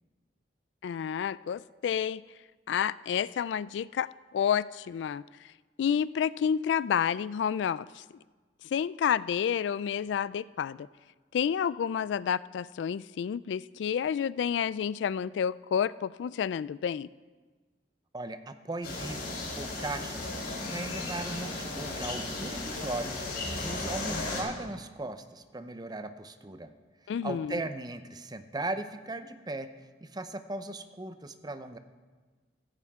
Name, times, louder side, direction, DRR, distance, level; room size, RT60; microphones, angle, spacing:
voice 1, 0.8-2.2 2.7-5.2 5.8-8.0 8.7-10.9 11.3-17.1 27.1-27.6, left 8 dB, 80° left, 19 dB, 0.3 m, -30 dB
voice 2, 18.1-26.7 27.2-29.7 30.0-31.8, right 2 dB, 25° right, 10 dB, 0.7 m, -38 dB
sound 1, 18.8-24.4, left 2 dB, 60° left, 4.5 m, -35 dB
16.5 x 15.0 x 3.6 m, 1.4 s
head